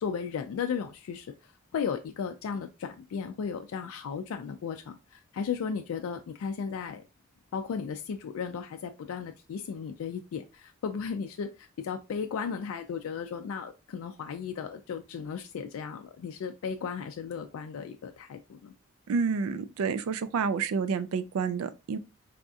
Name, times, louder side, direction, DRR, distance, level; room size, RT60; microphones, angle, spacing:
voice 1, 0.0-1.3 1.7-7.0 7.5-18.7, left 6 dB, 75° left, 0.3 m, -35 dB
voice 2, 19.1-22.0, right 5 dB, 80° right, 0.3 m, -29 dB
4.1 x 2.3 x 2.5 m
head